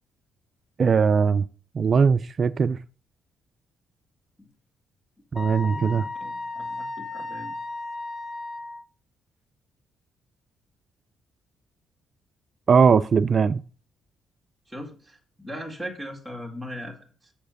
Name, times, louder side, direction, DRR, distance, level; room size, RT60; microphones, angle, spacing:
voice 1, 0.8-1.5 1.8-2.8 5.3-6.1 12.7-13.6, right 6 dB, 45° right, 0.3 m, -20 dB
Wind instrument woodwind instrument, 5.4-8.8, left 3 dB, 35° left, 0.8 m, -34 dB
voice 2, 5.6-7.5 14.7-17.0, equal, 5° right, 1.8 m, -39 dB
6.5 x 5.7 x 6.4 m
cardioid pair, 90°, 0 cm